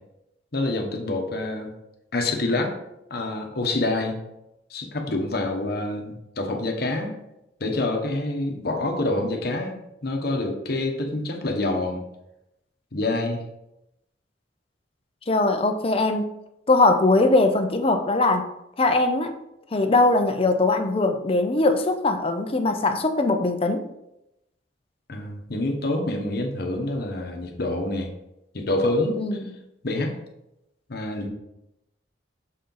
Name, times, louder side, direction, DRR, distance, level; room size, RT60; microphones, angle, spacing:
voice 1, 0.5-1.7 2.1-2.7 3.1-4.2 4.7-7.2 7.6-12.0 12.9-13.4 25.1-28.1 28.5-29.2 29.8-30.1 30.9-31.3, left 2 dB, 60° left, 3 dB, 1.0 m, -27 dB
voice 2, 15.3-16.2 16.7-18.5 18.8-19.4 19.7-23.9 29.2-29.5, left 2 dB, 30° left, 6 dB, 0.6 m, -21 dB
6.3 x 4.3 x 3.9 m, 0.86 s
head